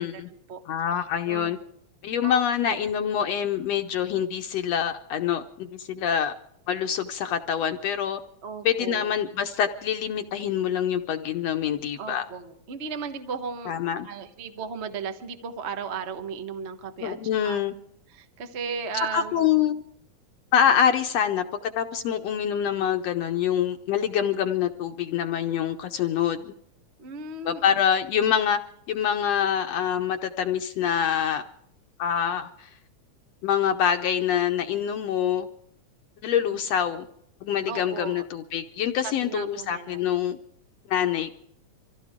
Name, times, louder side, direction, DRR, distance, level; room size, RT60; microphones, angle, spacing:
voice 1, 0.0-0.6 1.3-1.5 2.2-2.8 8.4-9.1 12.0-17.2 17.4-17.6 18.1-19.5 27.0-27.8 36.5-36.6 37.7-38.2 39.0-40.0, right 5 dB, 70° right, 7 dB, 0.6 m, -36 dB
voice 2, 0.7-1.6 2.0-6.3 6.7-8.2 8.6-12.2 13.7-14.1 17.0-17.7 19.0-19.8 20.5-26.5 27.4-28.6 28.9-31.4 32.0-32.7 33.4-35.5 36.2-37.1 37.4-40.4 40.9-41.3, left 9 dB, 70° left, 7 dB, 1.6 m, -25 dB
25.5 x 15.5 x 3.6 m, 0.70 s
omnidirectional pair, 3.5 m